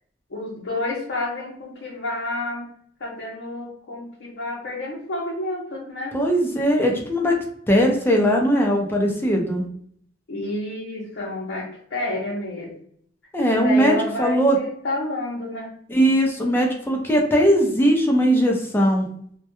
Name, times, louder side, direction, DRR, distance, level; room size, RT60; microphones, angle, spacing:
voice 1, 0.3-2.7 3.0-6.2 10.3-12.7 13.5-15.7, left 1 dB, 85° left, -4 dB, 0.6 m, -29 dB
voice 2, 6.1-7.4 7.7-9.6 13.3-14.6 15.9-19.1, equal, 10° left, 0 dB, 0.4 m, -19 dB
2.2 x 2.1 x 2.8 m, 0.63 s
head